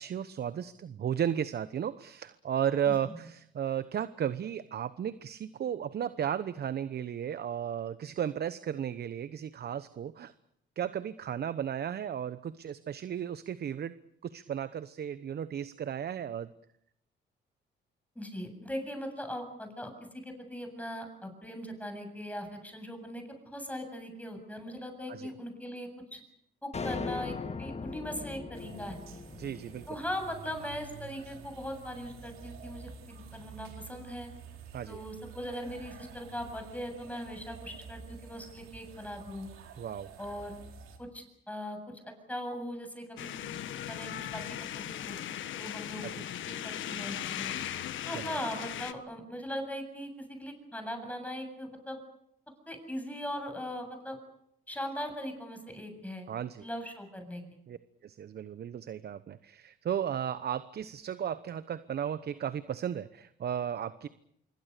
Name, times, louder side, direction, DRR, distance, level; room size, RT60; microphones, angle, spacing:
voice 1, 0.0-10.3 10.8-13.9 14.2-16.5 25.1-25.3 29.4-30.0 34.7-35.0 39.8-40.1 46.0-46.2 48.1-48.4 56.3-56.7 57.7-57.8 58.0-64.1, right 9 dB, 55° right, 14 dB, 1.0 m, -34 dB
voice 2, 18.2-26.2 26.6-29.0 29.9-34.3 34.9-39.5 40.2-40.6 41.0-43.5 43.9-45.2 45.6-46.0 46.5-47.5 48.0-50.1 50.4-52.0 52.7-54.2 54.7-56.3 56.6-57.4, equal, 5° left, 5 dB, 7.9 m, -40 dB
sound 1, 26.7-31.2, left 4 dB, 35° left, 1.7 m, -40 dB
sound 2, 28.5-41.0, right 6 dB, 85° right, 4.2 m, -49 dB
sound 3, 43.2-48.9, left 11 dB, 75° left, 1.6 m, -38 dB
26.0 x 23.5 x 6.8 m, 0.73 s
cardioid pair, 90°, 20 cm